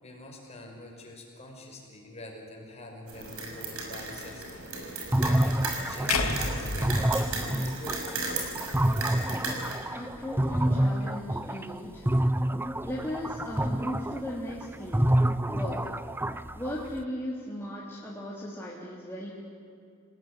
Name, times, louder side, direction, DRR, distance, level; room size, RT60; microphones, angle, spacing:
voice 1, 0.0-8.1, left 1 dB, 30° left, 1 dB, 5.5 m, -46 dB
sound 1, 3.1-9.7, right 3 dB, 75° right, 6.2 m, -35 dB
sound 2, 5.1-11.8 12.1-17.0, right 1 dB, 10° right, 0.6 m, -28 dB
sound 3, 6.1-8.4, left 3 dB, 90° left, 2.7 m, -32 dB
voice 2, 9.9-12.1 12.8-15.1 15.5-15.8 16.5-19.3, left 1 dB, 10° left, -6 dB, 3.2 m, -36 dB
27.5 x 18.0 x 9.7 m, 2.4 s
head